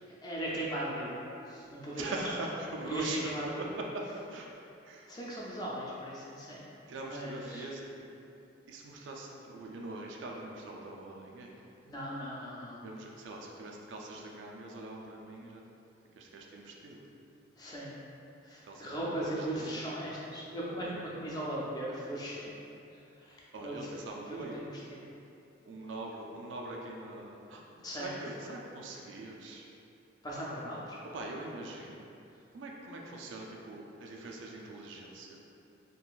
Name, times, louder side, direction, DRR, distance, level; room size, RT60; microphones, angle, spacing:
voice 1, 0.2-1.2 1.5-2.1 2.9-3.7 5.1-6.6 7.0-7.7 11.9-12.8 17.6-18.0 18.4-22.6 23.2-23.8 24.3-25.0 27.8-28.1 30.2-31.0, right 1 dB, 20° left, -6 dB, 0.4 m, -38 dB
voice 2, 1.9-3.3 3.6-4.0 4.3-4.5 4.8-5.2 6.9-7.9 8.7-11.5 12.8-15.6 16.2-17.1 18.6-19.9 20.8-21.0 23.5-24.5 25.7-27.6 27.9-29.7 31.0-32.0 32.5-35.4, right 2 dB, 70° right, -1 dB, 0.4 m, -42 dB
3.7 x 2.4 x 2.3 m, 2.7 s
head